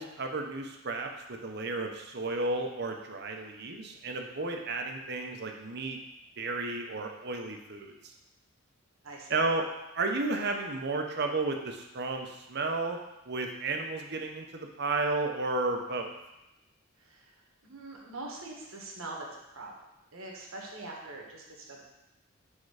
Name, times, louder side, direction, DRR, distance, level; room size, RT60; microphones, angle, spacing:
voice 1, 0.0-6.0 6.4-7.9 9.3-9.7 9.9-13.0 13.3-16.1, right 3 dB, 50° right, 3 dB, 0.7 m, -32 dB
voice 2, 9.0-9.3 17.0-17.3 17.6-19.7 20.1-21.8, right 2 dB, 80° right, -1 dB, 1.4 m, -43 dB
6.4 x 3.6 x 4.9 m, 0.93 s
head